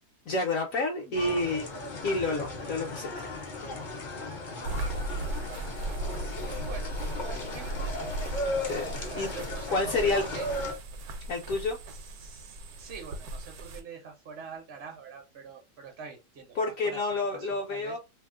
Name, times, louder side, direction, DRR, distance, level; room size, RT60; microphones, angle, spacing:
voice 1, 0.3-1.7 2.0-3.3 8.6-9.3 9.7-10.2 11.3-11.8 16.6-18.0, left 2 dB, 65° left, 0.9 m, -29 dB
sound 1, 1.1-10.7, left 2 dB, 45° left, 0.6 m, -36 dB
sound 2, 4.6-13.8, right 1 dB, 70° right, 1.1 m, -37 dB
voice 2, 5.1-6.9 7.2-10.5 11.9-18.0, right 6 dB, 55° right, 0.8 m, -46 dB
2.8 x 2.0 x 3.5 m
omnidirectional pair, 1.7 m